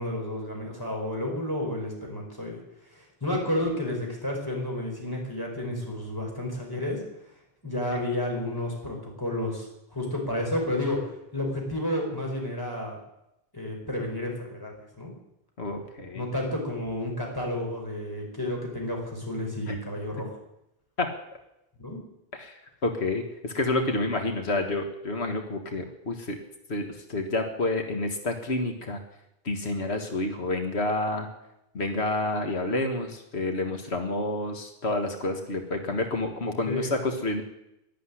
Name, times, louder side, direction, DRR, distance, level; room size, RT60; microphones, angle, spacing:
voice 1, 0.0-2.6 2.9-7.0 7.6-13.0 13.5-15.1 16.1-20.3 21.8-22.0 36.7-36.9, left 1 dB, 20° left, -1 dB, 5.2 m, -31 dB
voice 2, 15.6-16.3 19.7-19.8 21.0-21.1 22.3-26.4 26.7-29.0 29.5-31.3 31.7-37.4, left 2 dB, 85° left, 4 dB, 1.9 m, -29 dB
12.0 x 11.0 x 9.9 m, 0.85 s
omnidirectional pair, 1.1 m